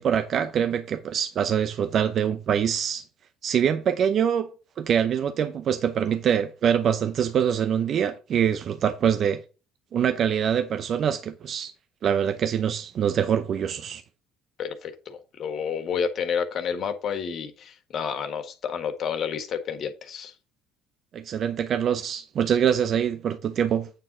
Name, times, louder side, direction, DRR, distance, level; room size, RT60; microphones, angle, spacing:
voice 1, 0.0-3.1 3.4-9.4 9.9-11.7 12.0-14.0 21.1-23.9, right 8 dB, 55° right, 0.7 m, -24 dB
voice 2, 14.6-20.3, left 7 dB, 50° left, 1.6 m, -30 dB
8.9 x 3.9 x 6.1 m
hypercardioid pair, 70°, 0 cm